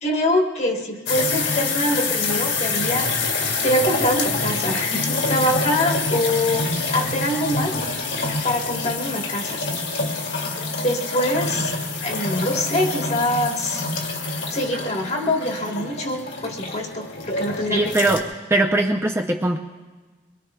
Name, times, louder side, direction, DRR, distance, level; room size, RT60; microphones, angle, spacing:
voice 1, 0.0-3.1 3.6-7.8 8.4-9.6 10.8-11.8 12.0-13.8 14.5-17.8, left 1 dB, 35° left, 1 dB, 1.4 m, -24 dB
sound 1, 1.1-18.2, left 3 dB, 70° left, 2.2 m, -26 dB
voice 2, 17.7-18.2 18.5-19.6, right 2 dB, 15° right, 1 dB, 0.6 m, -20 dB
23.5 x 22.5 x 2.3 m, 1.3 s
head